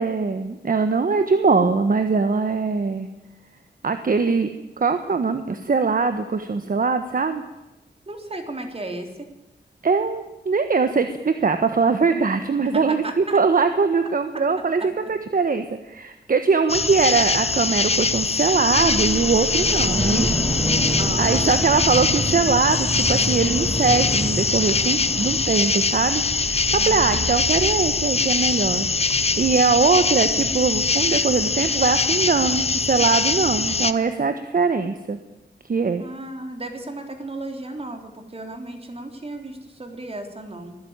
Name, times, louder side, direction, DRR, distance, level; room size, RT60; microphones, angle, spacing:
voice 1, 0.0-3.1 3.8-4.5 4.8-7.4 9.8-20.3 20.7-28.9 29.1-35.2 35.7-36.0, right 4 dB, 50° right, 9 dB, 1.3 m, -22 dB
voice 2, 8.1-9.3 12.9-13.4 21.0-21.6 26.7-27.2 36.0-40.8, right 2 dB, 30° right, 5 dB, 3.6 m, -34 dB
sound 1, 16.7-33.9, left 4 dB, 35° left, 0.9 m, -22 dB
sound 2, 18.7-31.2, equal, 5° right, 7.4 m, -29 dB
24.0 x 16.0 x 8.9 m, 0.99 s
wide cardioid pair, 125°, 19 cm